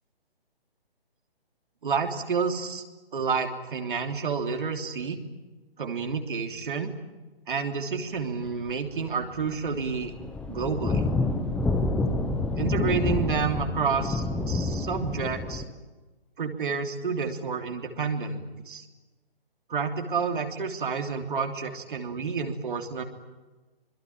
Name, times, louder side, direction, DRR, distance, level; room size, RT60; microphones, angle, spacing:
voice 1, 1.8-2.8 3.1-5.2 5.8-6.9 7.5-10.1 10.5-11.1 12.6-15.6 16.4-18.8 19.7-23.0, right 5 dB, 55° right, 5 dB, 3.2 m, -29 dB
sound 1, 9.0-9.1 9.4-15.6, left 2 dB, 5° left, 1.0 m, -28 dB
26.0 x 22.0 x 9.0 m, 1.2 s
figure-of-eight pair, 145°, 30 cm